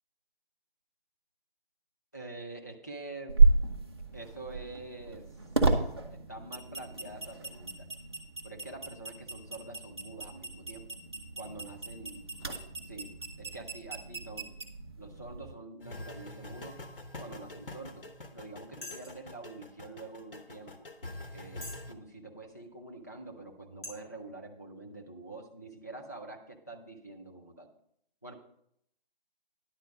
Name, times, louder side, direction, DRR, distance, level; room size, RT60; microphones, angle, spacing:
voice 1, 2.1-3.4 4.1-5.3 6.1-7.9 8.4-10.9 11.4-12.6 12.9-13.1 13.4-14.5 15.0-16.8 17.2-18.1 18.3-20.9 21.3-27.7 28.2-28.3, right 2 dB, 20° left, 0 dB, 0.5 m, -46 dB
sound 1, 3.3-15.5, right 3 dB, 25° right, 0.7 m, -31 dB
sound 2, 15.8-21.9, left 2 dB, 65° left, 1.1 m, -45 dB
sound 3, 18.8-19.3 20.0-20.1 20.7-20.8 21.5-21.9 22.5-22.6 23.3-23.4 23.8-23.9, left 1 dB, 90° left, 3.9 m, -44 dB
10.5 x 4.2 x 6.9 m, 0.71 s
figure-of-eight pair, 160°, 29 cm